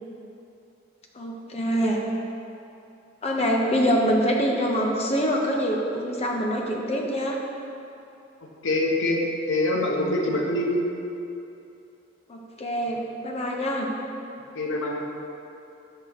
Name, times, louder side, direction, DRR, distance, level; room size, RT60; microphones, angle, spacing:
voice 1, 1.1-2.0 3.2-7.4 12.3-13.0 13.2-13.9, equal, 35° left, 0 dB, 0.6 m, -25 dB
voice 2, 8.6-10.8 14.5-15.1, left 1 dB, 70° left, 0 dB, 0.7 m, -24 dB
6.6 x 2.9 x 5.6 m, 2.8 s
head